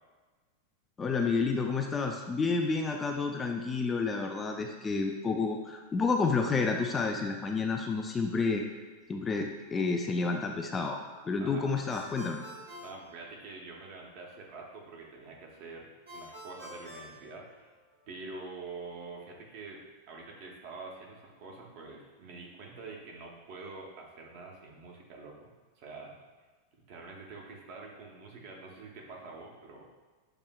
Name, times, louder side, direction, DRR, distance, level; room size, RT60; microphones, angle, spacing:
voice 1, 1.0-8.6 9.1-11.0 11.3-12.4, left 4 dB, 20° left, 3 dB, 0.3 m, -30 dB
voice 2, 11.4-11.7 12.8-17.7 18.1-25.5 25.8-26.2 26.9-30.0, right 3 dB, 45° right, -1 dB, 0.8 m, -46 dB
Ringtone, 11.9-13.8 16.1-18.0, equal, 65° right, 1.2 m, -48 dB
6.7 x 2.8 x 2.2 m, 1.4 s
figure-of-eight pair, 90°, 0 cm